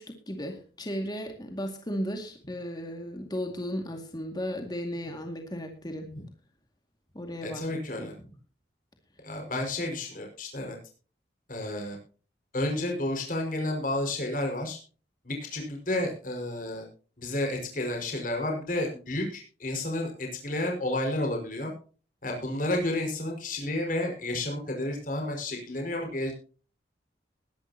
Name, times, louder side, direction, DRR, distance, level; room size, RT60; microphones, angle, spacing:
voice 1, 0.0-6.2 7.1-8.1, equal, 25° left, 3 dB, 2.2 m, -35 dB
voice 2, 7.4-8.1 9.2-10.8 11.5-12.0 12.5-14.8 15.2-16.9 17.2-21.7 22.2-26.3, left 1 dB, 50° left, 2 dB, 5.5 m, -31 dB
21.0 x 11.5 x 2.9 m, 0.38 s
head